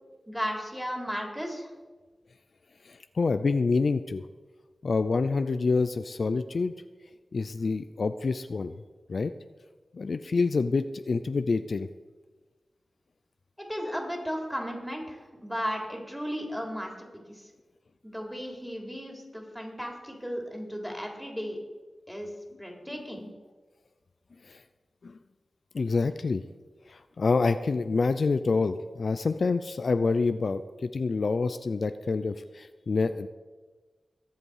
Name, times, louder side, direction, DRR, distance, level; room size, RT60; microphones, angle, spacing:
voice 1, 0.3-1.7 13.7-16.9 17.3-17.4 18.0-21.6 22.1-22.3 22.6-23.3, equal, ahead, 1 dB, 3.4 m, -35 dB
voice 2, 2.8-4.2 4.8-6.7 7.3-8.8 9.1-9.3 9.9-11.9 22.9-23.0 24.4-24.6 25.0-25.1 25.7-26.4 26.9-33.3, left 4 dB, 65° left, 10 dB, 0.5 m, -27 dB
21.5 x 8.0 x 4.9 m, 1.3 s
wide cardioid pair, 75°, 0 cm